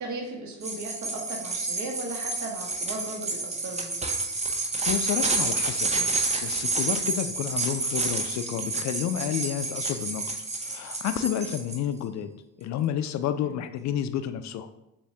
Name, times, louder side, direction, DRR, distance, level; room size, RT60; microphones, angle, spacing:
voice 1, 0.0-3.9 13.4-13.6, right 2 dB, 35° right, 1 dB, 1.0 m, -36 dB
sound 1, 0.6-11.8, right 3 dB, 15° right, 0.7 m, -29 dB
voice 2, 4.8-10.3 10.6-12.3 12.6-14.7, left 10 dB, 40° left, 10 dB, 0.4 m, -30 dB
6.8 x 2.4 x 2.8 m, 0.89 s
figure-of-eight pair, 50°, 49 cm